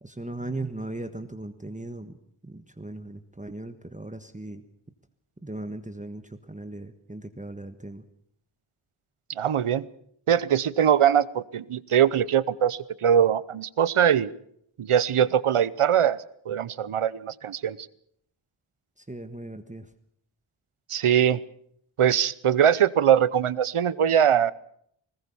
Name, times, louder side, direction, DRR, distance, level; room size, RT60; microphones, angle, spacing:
voice 1, 0.0-2.1 2.4-4.6 5.4-6.2 6.5-8.0 19.1-19.8, right 2 dB, 15° right, 7 dB, 1.3 m, -37 dB
voice 2, 9.4-9.9 10.3-14.3 14.8-16.2 16.5-17.8 20.9-21.4 22.0-24.5, right 9 dB, 90° right, 19 dB, 0.9 m, -22 dB
21.0 x 19.5 x 7.1 m, 0.68 s
wide cardioid pair, 90°, 49 cm